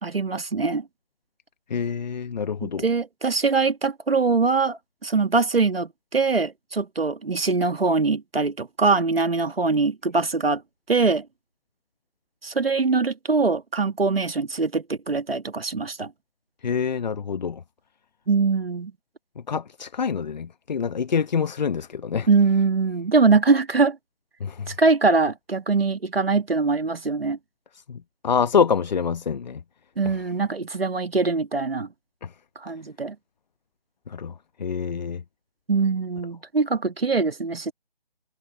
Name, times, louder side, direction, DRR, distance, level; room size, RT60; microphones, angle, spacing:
voice 1, 0.0-0.8 2.6-10.6 10.9-11.2 12.4-16.1 18.3-18.9 22.3-24.0 24.7-27.4 30.0-31.9 32.6-33.1 35.7-37.7, right 4 dB, 80° right, 1.6 m, -22 dB
voice 2, 1.7-2.8 16.6-17.6 19.5-22.3 24.4-24.7 27.9-28.0 28.2-29.6 32.2-32.3 34.1-34.3 34.6-35.2, left 6 dB, 50° left, 1.0 m, -26 dB
figure-of-eight pair, 150°, 29 cm